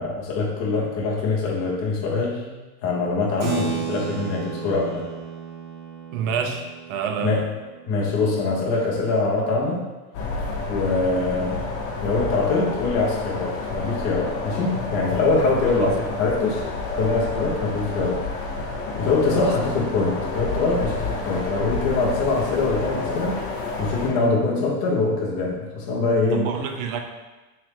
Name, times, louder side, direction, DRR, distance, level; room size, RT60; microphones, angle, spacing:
voice 1, 0.0-2.5 2.8-5.0 7.2-7.5 7.9-9.8 10.7-11.6 12.0-16.7 17.0-18.2 19.0-23.4 23.8-26.5, left 3 dB, 25° left, -4 dB, 0.3 m, -23 dB
Keyboard (musical), 3.4-9.4, right 7 dB, 35° right, 1.0 m, -34 dB
voice 2, 6.1-7.4 15.7-15.9 19.3-19.5 26.3-27.0, right 7 dB, 55° right, 5 dB, 0.5 m, -28 dB
sound 1, 10.1-24.1, left 3 dB, 40° left, 0.7 m, -29 dB
3.5 x 3.1 x 3.3 m, 1.2 s
supercardioid pair, 150°, 50 cm